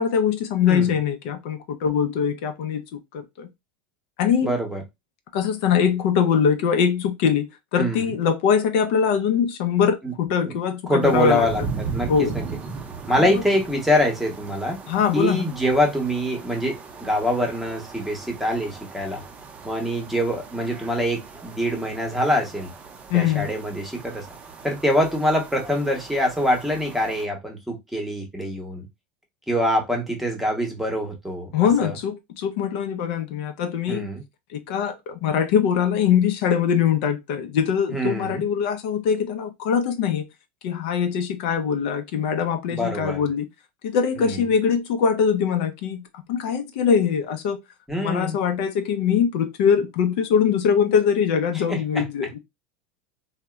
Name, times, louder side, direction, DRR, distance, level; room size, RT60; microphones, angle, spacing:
voice 1, 0.0-2.8 3.1-3.5 4.2-4.5 5.3-7.5 7.7-11.5 12.1-12.3 14.9-15.4 23.1-23.5 31.5-34.1 34.5-40.2 40.6-43.5 43.8-47.6 48.0-52.4, left 7 dB, 70° left, 0.5 m, -22 dB
voice 2, 4.4-4.8 7.8-8.1 10.0-10.1 10.4-10.5 10.9-12.4 13.1-14.8 15.1-19.2 19.6-22.7 23.1-24.2 24.6-28.8 29.5-32.0 33.9-34.2 37.9-38.4 42.7-43.2 44.2-44.4 47.9-48.4 51.7-52.1, equal, 5° right, 0.8 m, -24 dB
sound 1, 11.0-27.3, right 5 dB, 25° right, 0.5 m, -38 dB
2.7 x 2.1 x 2.2 m
supercardioid pair, 120°, 6 cm